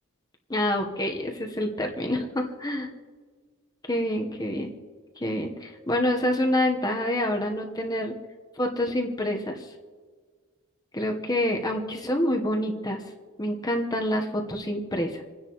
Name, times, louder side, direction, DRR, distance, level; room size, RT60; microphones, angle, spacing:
voice 1, 0.5-2.9 3.9-4.7 5.2-8.1 8.6-9.7 10.9-13.0 13.4-15.2, left 1 dB, 20° left, 2 dB, 1.0 m, -27 dB
28.5 x 10.0 x 3.1 m, 1.5 s
head